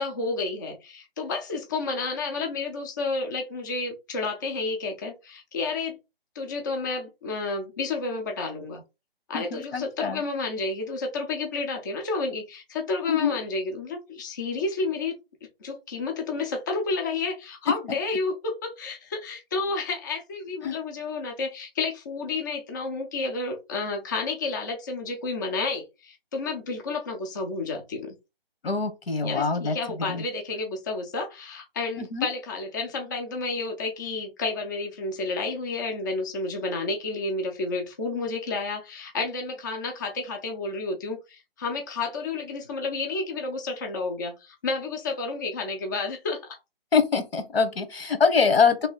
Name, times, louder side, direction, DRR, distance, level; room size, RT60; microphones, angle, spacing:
voice 1, 0.0-6.0 6.4-8.8 9.3-15.2 15.6-28.2 29.2-46.6, left 3 dB, 20° left, 0.4 m, -31 dB
voice 2, 9.3-10.2 13.1-13.4 20.6-20.8 28.6-29.8 30.1-30.2 32.0-32.3 46.9-48.9, left 5 dB, 85° left, 1.2 m, -24 dB
3.1 x 2.8 x 3.9 m
hypercardioid pair, 155°, 30 cm